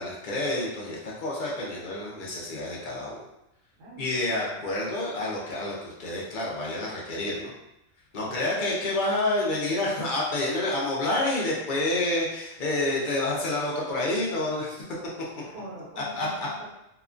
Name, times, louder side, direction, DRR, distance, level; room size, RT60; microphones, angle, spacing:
voice 1, 0.0-3.2 4.0-7.5 8.1-14.8 16.0-16.3, left 2 dB, 50° left, -4 dB, 0.7 m, -28 dB
voice 2, 3.8-4.7 8.1-8.5 15.3-16.6, right 1 dB, 70° right, -6 dB, 1.2 m, -44 dB
2.9 x 2.2 x 2.4 m, 0.89 s
omnidirectional pair, 1.3 m